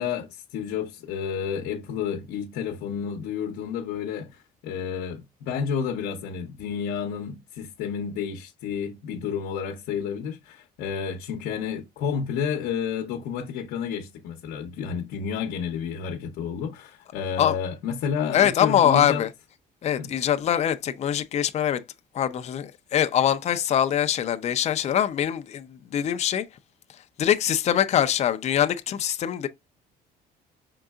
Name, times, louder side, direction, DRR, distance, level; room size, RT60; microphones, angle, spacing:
voice 1, 0.0-19.2 20.0-20.1, left 7 dB, 90° left, 0.8 m, -30 dB
voice 2, 18.3-19.3 19.8-21.8 22.1-26.5 27.2-29.5, left 10 dB, 40° left, 0.5 m, -23 dB
5.2 x 3.8 x 2.3 m
cardioid pair, 110°, 17 cm